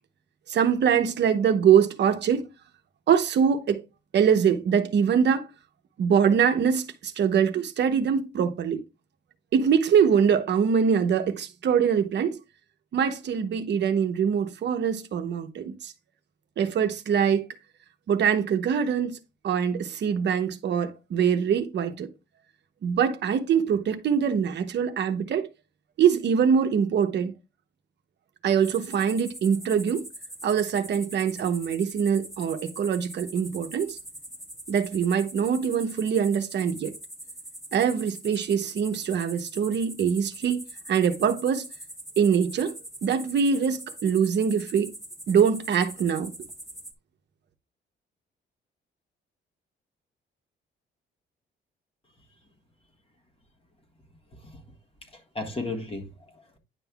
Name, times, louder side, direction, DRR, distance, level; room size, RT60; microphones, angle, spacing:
voice 1, 0.5-2.4 3.1-3.8 4.1-5.5 6.0-8.8 9.5-12.4 12.9-15.9 16.6-17.4 18.1-19.1 19.4-22.1 22.8-25.5 26.0-27.3 28.4-30.0 30.4-34.0 34.7-36.9 37.7-40.6 40.9-41.7 42.2-42.7 43.0-44.9 45.3-46.3, right 7 dB, 60° right, 0.9 m, -23 dB
sound 1, 28.6-46.9, right 1 dB, ahead, 1.4 m, -43 dB
voice 2, 54.3-54.6 55.1-56.6, left 2 dB, 30° left, 1.6 m, -36 dB
9.9 x 5.4 x 2.4 m
cardioid pair, 90°, 20 cm